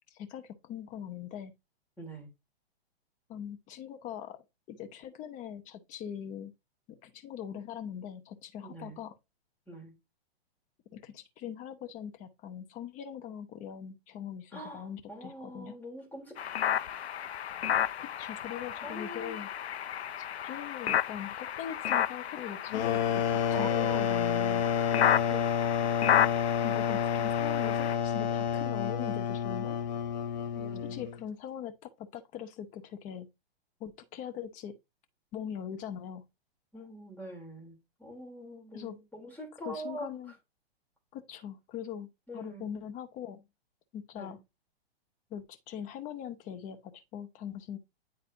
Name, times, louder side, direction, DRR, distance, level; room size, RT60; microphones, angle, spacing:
voice 1, 0.1-1.5 3.3-6.5 6.9-9.1 10.9-15.7 18.0-19.5 20.2-24.6 26.6-29.8 30.9-33.3 33.8-34.7 35.3-36.2 38.7-39.0 39.7-40.3 41.1-42.1 42.3-43.4 43.9-44.4 45.3-47.8, left 9 dB, 25° left, 0.8 m, -41 dB
voice 2, 2.0-2.3 8.6-9.0 9.7-9.9 14.5-17.1 18.8-19.4 23.5-24.0 25.0-25.5 30.5-31.0 36.7-40.3 42.3-42.7 44.1-44.4, equal, 5° left, 3.1 m, -44 dB
sound 1, 16.4-28.0, left 10 dB, 80° left, 0.6 m, -32 dB
sound 2, 22.7-31.2, left 8 dB, 45° left, 1.0 m, -29 dB
9.9 x 4.1 x 2.6 m
hypercardioid pair, 125°, 31 cm